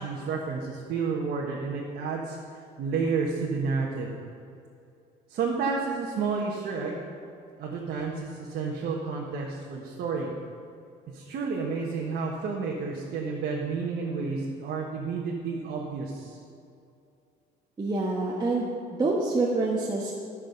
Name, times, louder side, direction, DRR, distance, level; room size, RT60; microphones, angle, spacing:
voice 1, 0.0-2.4 2.8-4.1 5.3-7.1 7.6-10.3 11.1-16.4, right 4 dB, 65° right, -3 dB, 1.4 m, -30 dB
voice 2, 17.8-18.7 19.0-20.1, right 3 dB, 25° right, -4 dB, 1.3 m, -26 dB
13.5 x 6.3 x 5.3 m, 2.5 s
cardioid pair, 110°, 17 cm